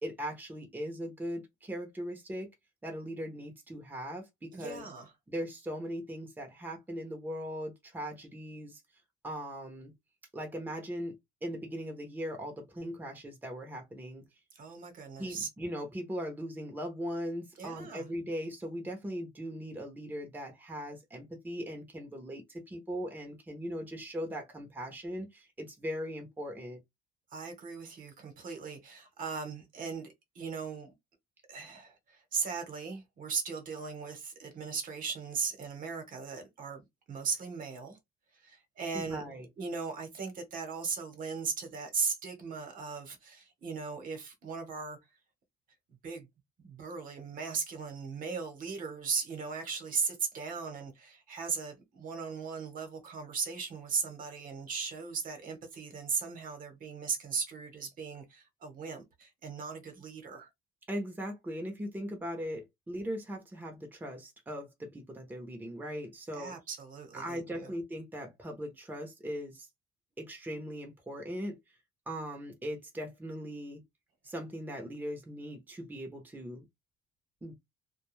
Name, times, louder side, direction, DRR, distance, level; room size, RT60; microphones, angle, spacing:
voice 1, 0.0-2.5 2.8-4.9 5.3-8.8 9.2-9.9 10.3-11.1 11.4-14.2 15.2-26.8 38.9-39.5 60.9-66.5 67.1-69.7 70.2-71.6 72.1-73.8 74.2-76.6 77.4-77.5, equal, 10° right, 0.8 m, -39 dB
voice 2, 4.5-5.1 14.5-15.5 17.6-18.1 27.3-30.9 31.5-38.0 38.3-39.2 39.6-45.0 46.0-46.3 46.6-60.5 66.4-67.7, right 5 dB, 55° right, 1.1 m, -38 dB
2.3 x 2.3 x 3.1 m
cardioid pair, 110°, 17 cm